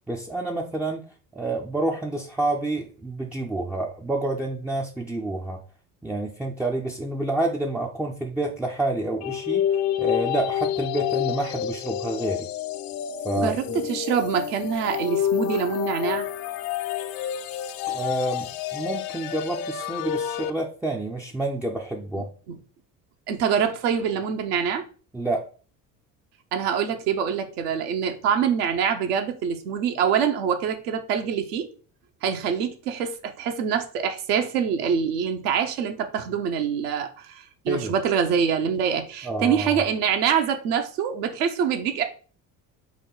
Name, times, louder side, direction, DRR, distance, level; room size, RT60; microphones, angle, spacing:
voice 1, 0.1-1.1 1.3-5.6 6.0-12.5 13.2-13.8 17.9-22.3 25.1-25.5 37.7-37.9 39.2-39.8, right 2 dB, 5° right, 0.3 m, -28 dB
sound 1, 9.2-20.5, left 10 dB, 65° left, 0.6 m, -28 dB
voice 2, 13.9-16.3 22.5-22.6 23.3-24.8 26.5-31.7 32.2-42.0, right 7 dB, 75° right, 0.9 m, -25 dB
4.8 x 2.2 x 3.8 m
hypercardioid pair, 60°, 48 cm